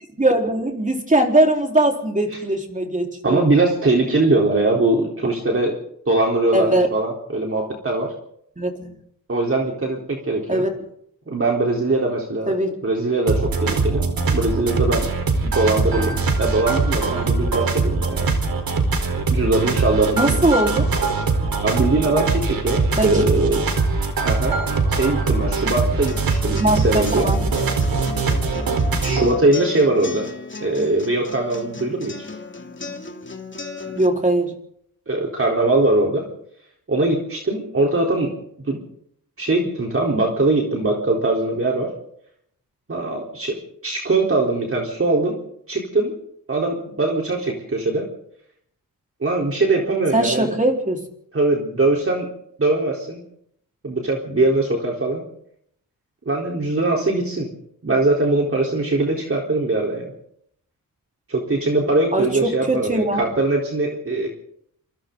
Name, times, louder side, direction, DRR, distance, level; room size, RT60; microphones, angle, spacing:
voice 1, 0.2-3.4 6.5-6.9 8.6-9.0 10.5-10.9 12.5-12.7 20.1-20.9 23.0-23.2 26.6-27.4 34.0-34.5 50.1-51.0 62.1-63.2, right 1 dB, 20° right, 1 dB, 4.5 m, -20 dB
voice 2, 3.2-5.8 6.1-8.1 9.3-10.6 11.3-12.5 12.8-14.0 14.3-15.1 15.5-18.3 19.3-20.4 21.6-23.6 24.2-24.6 24.9-27.3 29.0-30.3 30.6-32.3 35.1-36.3 36.9-38.3 38.6-38.8 39.4-41.9 42.9-43.6 43.8-45.3 45.7-46.1 46.5-48.1 49.2-50.5 51.3-52.3 52.6-53.2 53.8-55.2 56.3-57.5 57.8-60.1 61.3-64.3, right 2 dB, 40° right, -1 dB, 4.1 m, -21 dB
sound 1, 13.3-29.3, right 3 dB, 75° right, 4.4 m, -22 dB
sound 2, 26.1-34.1, left 4 dB, 35° left, 2.7 m, -35 dB
27.5 x 25.0 x 4.0 m, 0.71 s
wide cardioid pair, 90°, 35 cm